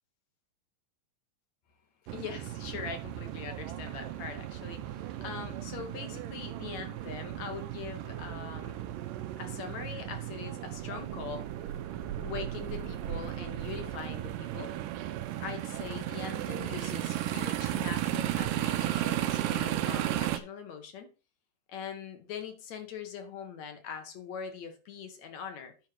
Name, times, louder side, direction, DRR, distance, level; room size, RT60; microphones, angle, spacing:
voice 1, 2.1-8.8 9.4-11.5 12.2-14.7 15.4-21.1 21.7-25.7, left 6 dB, 60° left, 2.6 m, -42 dB
sound 1, 2.1-20.4, right 13 dB, 80° right, 2.3 m, -35 dB
sound 2, 3.9-9.5 9.8-9.9, right 3 dB, 55° right, 1.4 m, -54 dB
10.0 x 5.7 x 4.6 m
omnidirectional pair, 3.9 m